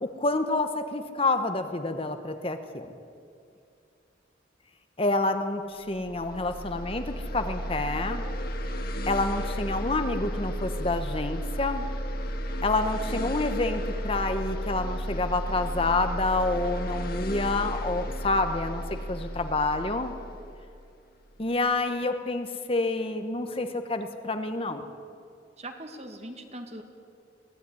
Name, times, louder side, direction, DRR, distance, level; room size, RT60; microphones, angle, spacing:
voice 1, 0.0-2.9 5.0-8.2 9.1-11.9 12.6-20.2 21.4-24.9, left 2 dB, 30° left, 7 dB, 1.1 m, -28 dB
sound 1, 5.9-21.3, equal, 50° left, 1.9 m, -33 dB
voice 2, 25.6-26.8, right 1 dB, 35° right, 5 dB, 2.0 m, -40 dB
22.5 x 16.5 x 9.8 m, 2.5 s
head